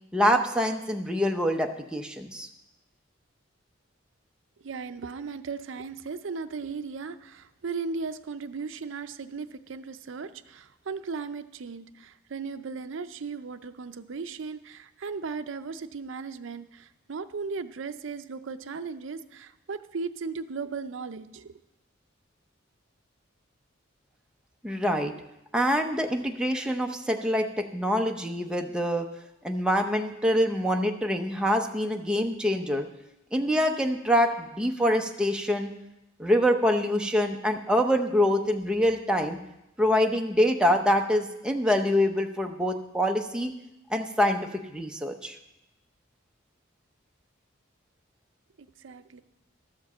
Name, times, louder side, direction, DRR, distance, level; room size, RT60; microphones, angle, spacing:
voice 1, 0.1-2.5 24.6-25.1 25.5-29.1 29.4-32.9 33.3-35.7 36.2-39.4 39.8-43.5 43.9-44.4 44.7-45.4, equal, 5° right, 3 dB, 0.7 m, -25 dB
voice 2, 4.6-21.5 48.6-49.2, right 4 dB, 70° right, 10 dB, 0.5 m, -37 dB
12.5 x 5.2 x 7.1 m, 0.89 s
head